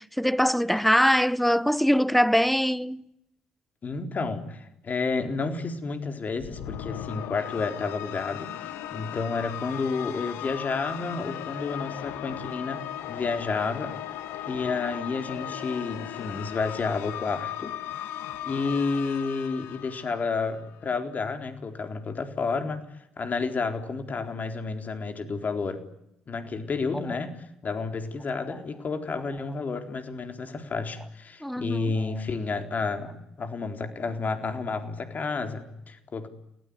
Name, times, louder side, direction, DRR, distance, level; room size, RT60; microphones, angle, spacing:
voice 1, 0.0-3.0 31.4-31.9, equal, ahead, 1.1 m, -23 dB
voice 2, 3.8-14.0 14.5-17.7 18.4-22.8 23.2-25.8 26.3-36.3, left 4 dB, 40° left, 4.0 m, -31 dB
sound 1, 6.4-20.8, left 11 dB, 70° left, 1.7 m, -37 dB
29.5 x 19.0 x 9.8 m
hypercardioid pair, 50°, 4 cm